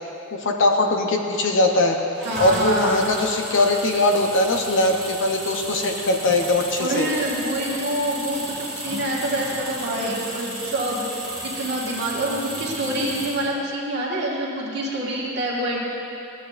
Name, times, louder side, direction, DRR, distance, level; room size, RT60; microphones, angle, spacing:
voice 1, 0.3-2.0 2.4-7.1, left 2 dB, 60° left, 3 dB, 0.8 m, -21 dB
sound 1, 2.1-13.5, right 1 dB, 5° left, 2.2 m, -34 dB
voice 2, 2.2-3.1 6.8-15.8, right 1 dB, 55° right, -5 dB, 1.7 m, -26 dB
15.5 x 8.2 x 2.5 m, 2.9 s
head